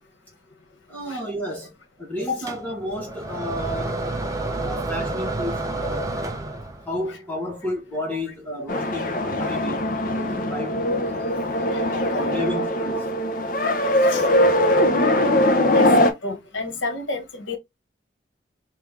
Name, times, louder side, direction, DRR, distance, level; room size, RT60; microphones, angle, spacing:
voice 1, 0.9-4.1 4.6-6.2 6.8-10.8 12.1-13.1, left 1 dB, 10° left, 1.3 m, -31 dB
sound 1, 2.5-7.0, right 2 dB, 20° right, 0.6 m, -29 dB
sound 2, 8.7-16.1, left 1 dB, 45° left, 0.8 m, -21 dB
voice 2, 11.7-13.1 13.3-13.7 13.9-14.3 15.1-15.4 15.7-17.6, left 2 dB, 85° left, 1.5 m, -33 dB
3.6 x 3.3 x 3.3 m
head